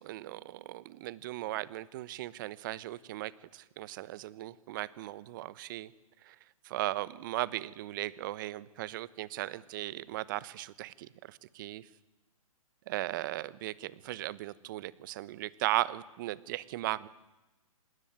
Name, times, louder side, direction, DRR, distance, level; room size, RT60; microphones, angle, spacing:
voice 1, 0.0-5.9 6.2-6.4 6.7-11.9 12.9-17.1, right 16 dB, 35° right, 19 dB, 1.0 m, -37 dB
25.5 x 21.0 x 9.5 m, 1.0 s
hypercardioid pair, 145°, 18 cm